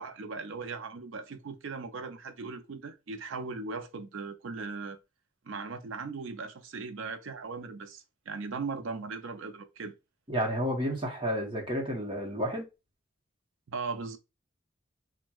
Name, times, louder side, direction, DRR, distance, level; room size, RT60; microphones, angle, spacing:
voice 1, 0.0-5.0 5.5-10.0 13.7-14.2, right 4 dB, 80° right, 0.5 m, -38 dB
voice 2, 10.3-12.7, equal, 25° right, 0.9 m, -31 dB
4.3 x 2.2 x 2.3 m
head